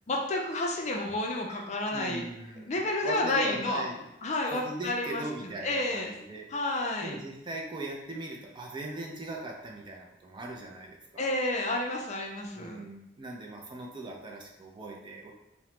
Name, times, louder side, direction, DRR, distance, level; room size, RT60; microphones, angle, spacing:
voice 1, 0.1-2.2 2.7-3.8 4.2-5.2 5.6-6.1 6.5-7.2 11.2-12.8, left 2 dB, 40° left, 1 dB, 0.4 m, -30 dB
voice 2, 1.5-4.1 4.4-11.3 12.5-15.3, right 2 dB, 25° right, 0 dB, 0.4 m, -40 dB
2.9 x 2.0 x 3.0 m, 0.86 s
head